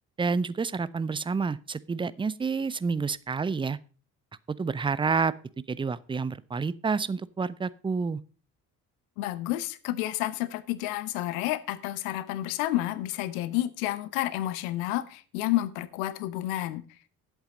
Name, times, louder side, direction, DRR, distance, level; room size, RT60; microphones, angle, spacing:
voice 1, 0.2-3.8 4.6-5.3 5.7-8.2, right 5 dB, 10° right, 0.5 m, -29 dB
voice 2, 9.2-16.8, left 15 dB, 70° left, 0.9 m, -30 dB
11.0 x 8.1 x 5.3 m
figure-of-eight pair, 45°, 46 cm